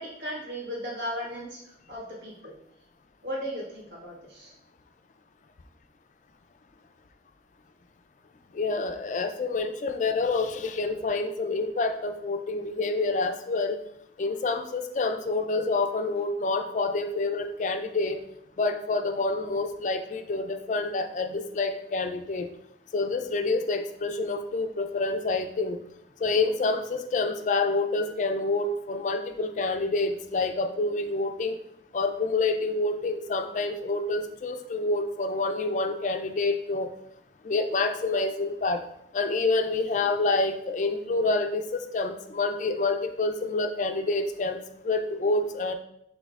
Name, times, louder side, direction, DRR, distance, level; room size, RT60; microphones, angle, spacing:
voice 1, 0.0-1.6 1.9-2.5 3.2-4.5, equal, 70° right, -5 dB, 1.6 m, -36 dB
voice 2, 8.5-13.8 14.2-18.2 18.6-22.5 22.9-25.8 26.2-31.6 31.9-36.9 37.4-38.9 39.1-45.7, left 3 dB, 40° left, 7 dB, 0.3 m, -27 dB
6.3 x 3.3 x 2.4 m, 0.75 s
head